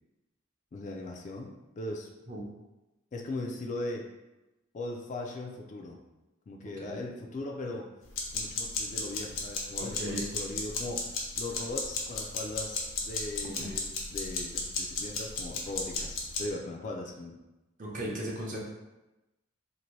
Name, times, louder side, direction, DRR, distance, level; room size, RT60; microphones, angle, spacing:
voice 1, 0.7-2.1 3.1-4.1 4.7-6.0 6.5-7.9 8.3-13.7 14.1-17.4, left 2 dB, 40° left, 1 dB, 0.3 m, -39 dB
sound 1, 8.1-16.5, left 4 dB, 80° left, 0.6 m, -34 dB
voice 2, 9.7-10.3 13.4-13.8 17.8-18.6, right 1 dB, 40° right, -3 dB, 0.6 m, -36 dB
2.7 x 2.5 x 3.1 m, 1.0 s
head